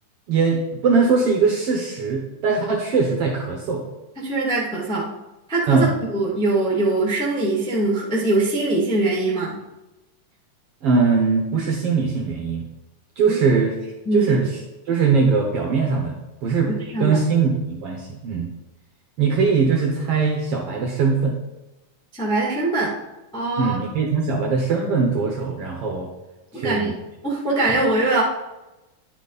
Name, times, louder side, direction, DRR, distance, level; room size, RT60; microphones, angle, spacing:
voice 1, 0.3-3.8 5.7-5.9 10.8-12.6 13.2-14.6 14.9-16.7 17.0-18.5 19.2-21.3 23.6-26.1 26.5-26.9, right 5 dB, 70° right, 0 dB, 1.5 m, -21 dB
voice 2, 4.1-5.1 5.5-9.5 13.2-13.4 14.0-14.3 16.7-17.2 22.1-22.9 23.3-23.8 26.5-26.9 27.2-28.2, right 2 dB, ahead, -5 dB, 1.1 m, -22 dB
10.5 x 6.1 x 4.0 m, 1.0 s
omnidirectional pair, 3.9 m